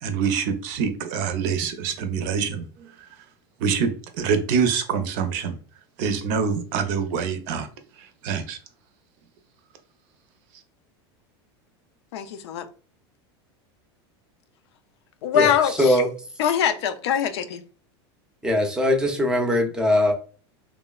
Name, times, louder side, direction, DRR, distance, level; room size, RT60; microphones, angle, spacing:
voice 1, 0.0-2.9 3.6-5.6 6.0-7.7 8.0-8.6, right 6 dB, 60° right, 7 dB, 0.6 m, -25 dB
voice 2, 12.1-12.7 15.2-16.0 16.4-17.6, left 8 dB, 80° left, 9 dB, 0.4 m, -23 dB
voice 3, 15.3-16.1 18.4-20.1, left 1 dB, 5° right, 3 dB, 0.5 m, -21 dB
3.1 x 2.1 x 2.3 m, 0.39 s
supercardioid pair, 130°, 14 cm